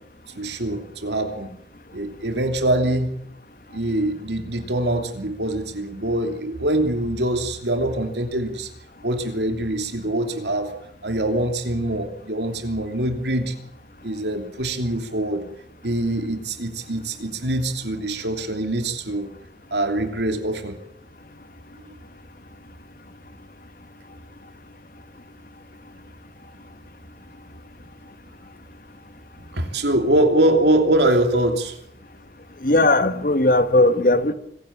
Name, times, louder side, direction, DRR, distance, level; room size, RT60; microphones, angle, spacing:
voice 1, 0.4-1.5 1.9-3.2 3.7-8.7 9.0-10.8 11.0-13.5 14.0-15.4 15.8-19.3 19.7-20.8 21.9-22.0 29.5-31.8, right 1 dB, 80° right, 6 dB, 3.0 m, -23 dB
voice 2, 32.6-34.3, left 2 dB, 50° left, 11 dB, 1.5 m, -17 dB
25.0 x 16.0 x 7.4 m, 0.69 s
head